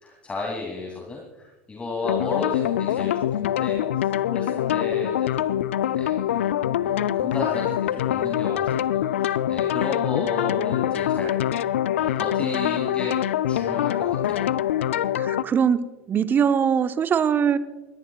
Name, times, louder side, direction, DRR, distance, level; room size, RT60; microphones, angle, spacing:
voice 1, 0.0-3.1 3.4-5.6 5.9-11.3 11.9-13.2 13.5-14.5 14.8-15.1, left 2 dB, 20° left, -1 dB, 2.8 m, -34 dB
sound 1, 2.0-15.4, left 11 dB, 80° left, 0.4 m, -24 dB
voice 2, 15.2-17.6, right 7 dB, 30° right, 12 dB, 0.8 m, -22 dB
21.0 x 17.5 x 2.4 m, 1.2 s
hypercardioid pair, 85°, 7 cm